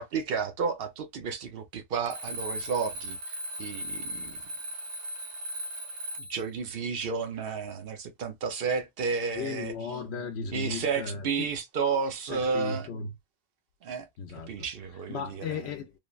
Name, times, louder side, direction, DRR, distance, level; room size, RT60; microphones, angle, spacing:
voice 1, 0.0-4.4 6.2-9.7 10.5-12.9 13.8-14.1 14.5-15.6, right 5 dB, 60° right, 0.9 m, -32 dB
Alarm, 2.1-6.5, equal, 85° right, 1.0 m, -37 dB
voice 2, 9.4-11.5 12.3-13.1 14.2-14.5 15.1-15.9, left 5 dB, 75° left, 0.8 m, -35 dB
3.2 x 2.0 x 2.3 m
omnidirectional pair, 1.1 m